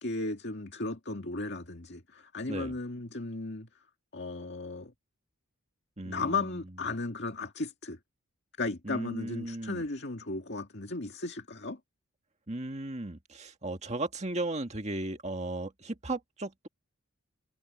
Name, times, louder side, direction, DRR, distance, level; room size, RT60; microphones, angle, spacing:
voice 1, 0.0-3.7 4.1-4.9 6.0-8.0 8.6-11.8, left 3 dB, 50° left, 2.1 m, -35 dB
voice 2, 6.0-6.6 8.8-9.9 12.5-16.7, right 2 dB, 30° right, 1.9 m, -36 dB
head